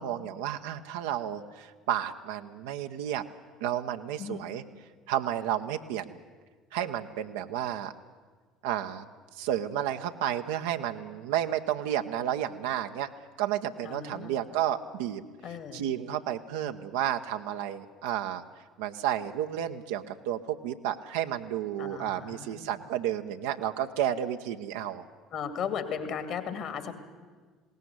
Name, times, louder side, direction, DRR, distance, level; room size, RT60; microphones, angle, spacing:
voice 1, 0.0-3.2 3.6-4.6 5.1-6.2 6.7-7.9 8.6-9.1 9.3-13.1 13.4-15.2 15.7-18.4 18.8-25.0, right 11 dB, 65° right, 6 dB, 0.8 m, -31 dB
voice 2, 13.8-14.3 15.4-15.8 21.8-22.7 25.3-26.9, left 7 dB, 50° left, 10 dB, 2.4 m, -36 dB
20.5 x 18.0 x 9.5 m, 1.5 s
figure-of-eight pair, 60°, 0 cm